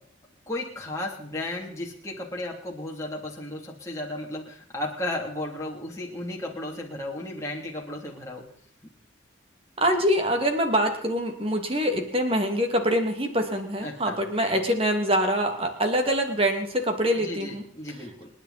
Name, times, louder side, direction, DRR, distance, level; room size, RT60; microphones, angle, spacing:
voice 1, 0.5-8.4 13.8-14.2 17.2-18.3, left 1 dB, 15° left, -2 dB, 2.9 m, -34 dB
voice 2, 9.8-17.6, equal, 25° right, 4 dB, 2.3 m, -24 dB
28.5 x 10.0 x 4.2 m, 0.62 s
head